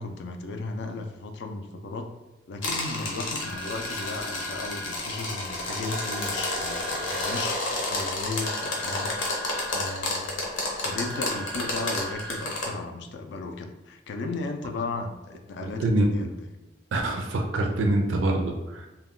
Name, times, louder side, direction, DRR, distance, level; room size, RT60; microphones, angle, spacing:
voice 1, 0.0-2.1 2.5-9.2 9.7-10.3 10.8-16.5, left 3 dB, 60° left, 5 dB, 0.3 m, -35 dB
sound 1, 2.6-12.7, left 2 dB, 85° left, 0.7 m, -31 dB
sound 2, 3.4-4.9 5.9-7.4 8.4-9.9 10.9-12.4, equal, 10° left, 0.5 m, -39 dB
voice 2, 15.8-16.3 16.9-18.9, right 1 dB, 80° right, 2 dB, 0.4 m, -25 dB
2.2 x 2.2 x 3.5 m, 1.0 s
head